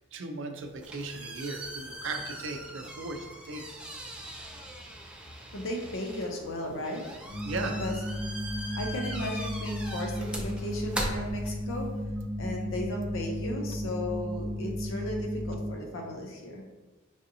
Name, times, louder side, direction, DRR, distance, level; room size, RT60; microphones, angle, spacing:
voice 1, 0.1-3.6 7.4-7.8, right 3 dB, 70° right, 5 dB, 0.5 m, -37 dB
sound 1, 0.6-12.0, right 1 dB, 5° right, 0.4 m, -40 dB
voice 2, 5.5-7.1 7.8-8.0 8.7-11.9 12.4-16.6, left 1 dB, 75° left, 1 dB, 0.5 m, -35 dB
sound 2, 7.3-15.7, left 1 dB, 35° right, 1.0 m, -34 dB
4.8 x 2.7 x 2.7 m, 1.2 s
head